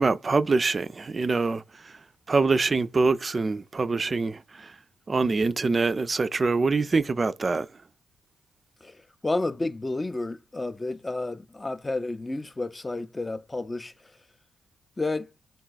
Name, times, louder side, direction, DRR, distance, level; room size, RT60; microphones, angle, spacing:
voice 1, 0.0-1.6 2.3-4.7 5.1-7.7, right 3 dB, 40° right, 0.3 m, -24 dB
voice 2, 9.2-13.9 15.0-15.3, left 2 dB, 25° left, 0.4 m, -31 dB
3.9 x 2.3 x 3.9 m
hypercardioid pair, 40°, 0 cm